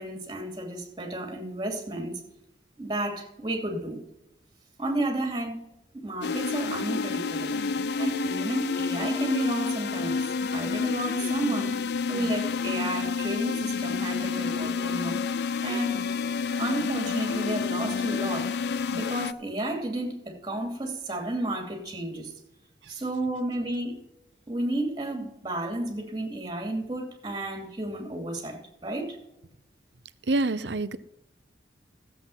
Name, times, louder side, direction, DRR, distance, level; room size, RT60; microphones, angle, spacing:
voice 1, 0.0-2.2 2.8-4.0 4.8-5.7 5.9-7.5 8.0-10.2 10.5-11.8 12.1-15.2 15.6-16.0 16.6-18.5 18.9-22.3 22.9-24.0 24.5-29.2, right 1 dB, 25° right, 2.8 m, -32 dB
sound 1, 6.2-19.3, left 5 dB, 65° left, 0.5 m, -29 dB
voice 2, 30.3-31.0, right 2 dB, 75° right, 0.8 m, -27 dB
14.0 x 7.8 x 5.7 m
head